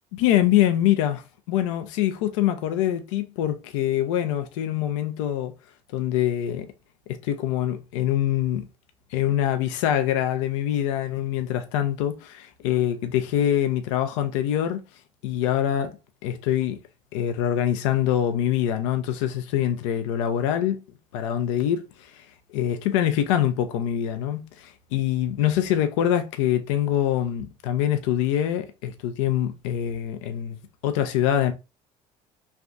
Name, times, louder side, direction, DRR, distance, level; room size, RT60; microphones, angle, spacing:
voice 1, 0.1-5.5 5.9-6.7 7.1-8.7 9.1-14.8 15.2-16.8 17.1-20.8 21.1-31.5, left 11 dB, 85° left, 0.5 m, -24 dB
3.3 x 2.5 x 2.5 m
supercardioid pair, 70°, 16 cm